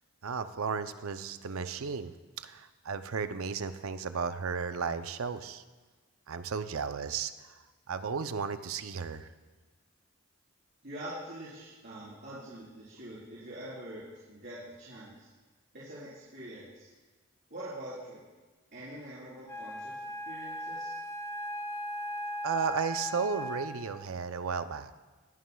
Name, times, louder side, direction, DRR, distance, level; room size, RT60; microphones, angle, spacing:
voice 1, 0.2-2.1 2.4-5.6 6.3-7.3 7.9-9.3 22.4-24.9, right 5 dB, 75° right, 11 dB, 0.5 m, -34 dB
voice 2, 10.8-15.3 15.7-16.9 17.5-18.2 18.7-20.0 20.3-20.9, right 1 dB, 50° right, -12 dB, 4.1 m, -44 dB
Wind instrument woodwind instrument, 19.5-24.1, equal, 10° left, 0.5 m, -38 dB
20.5 x 9.3 x 2.3 m, 1.3 s
head